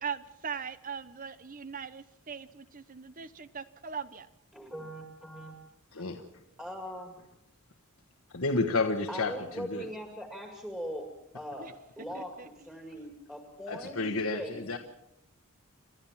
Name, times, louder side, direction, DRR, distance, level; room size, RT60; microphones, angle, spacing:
voice 1, 0.0-4.3 11.6-11.7 12.1-12.5, right 6 dB, 40° right, 14 dB, 0.7 m, -40 dB
voice 2, 4.5-5.6 5.9-6.0 6.6-7.2 9.1-11.1 11.3-11.7 12.0-14.6, equal, ahead, 3 dB, 2.2 m, -41 dB
voice 3, 5.9-6.2 8.3-9.9 13.7-14.8, left 3 dB, 75° left, 5 dB, 1.5 m, -31 dB
29.0 x 12.5 x 7.3 m, 0.85 s
head